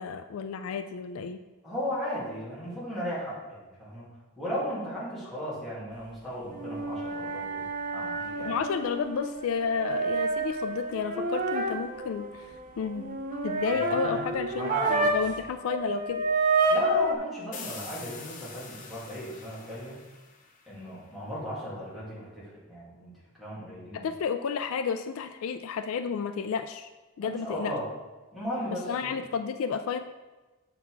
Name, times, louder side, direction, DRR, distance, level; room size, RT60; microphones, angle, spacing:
voice 1, 0.0-1.4 8.4-13.2 13.4-16.3 23.9-26.9 27.2-27.7 28.9-30.0, left 6 dB, 70° left, 9 dB, 0.3 m, -31 dB
voice 2, 1.6-4.1 4.4-7.7 7.9-8.6 13.9-14.3 14.5-15.3 16.7-20.0 20.7-23.1 23.4-24.1 27.2-27.8 28.3-29.1, equal, ahead, -9 dB, 2.3 m, -36 dB
sound 1, 6.5-15.4 15.7-17.2, right 2 dB, 35° right, 0.5 m, -29 dB
sound 2, 17.5-21.1, left 5 dB, 35° left, 0.7 m, -45 dB
7.3 x 4.0 x 4.6 m, 1.2 s
head